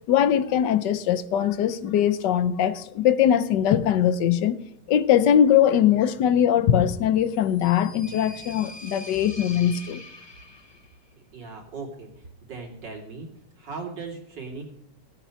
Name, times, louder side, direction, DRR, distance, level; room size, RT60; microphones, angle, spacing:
voice 1, 0.1-4.6 4.9-10.0, left 9 dB, 80° left, 1.4 m, -21 dB
sound 1, 7.2-11.0, left 1 dB, 20° left, 0.8 m, -44 dB
voice 2, 11.3-13.3 13.6-14.6, right 4 dB, 90° right, 3.3 m, -38 dB
17.0 x 9.3 x 5.7 m
omnidirectional pair, 1.9 m